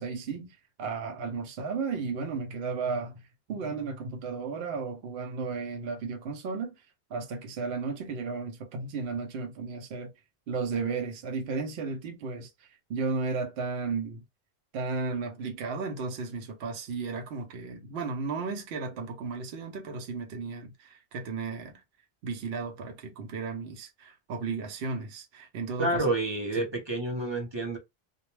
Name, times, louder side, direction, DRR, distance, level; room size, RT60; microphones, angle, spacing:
voice 1, 0.0-3.2 3.5-6.7 7.1-10.1 10.5-14.2 14.7-21.8 22.2-26.0, right 4 dB, 70° right, 0.8 m, -34 dB
voice 2, 25.8-27.8, right 2 dB, 30° right, 0.6 m, -29 dB
2.2 x 2.1 x 3.0 m
omnidirectional pair, 1.1 m